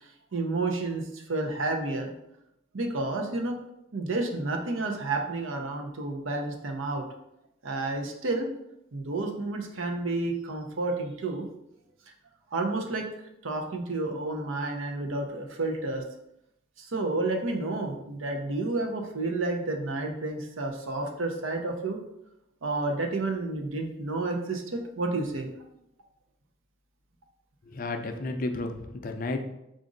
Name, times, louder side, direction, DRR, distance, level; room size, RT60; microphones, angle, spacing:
voice 1, 0.3-2.1 2.7-3.6 3.9-7.0 7.6-8.5 8.9-11.5 12.5-13.1 13.4-16.0 16.8-22.0 22.6-25.5, right 2 dB, 80° right, 3 dB, 0.7 m, -30 dB
voice 2, 27.7-29.5, left 2 dB, 45° left, 5 dB, 0.4 m, -32 dB
4.9 x 2.5 x 3.8 m, 0.83 s
head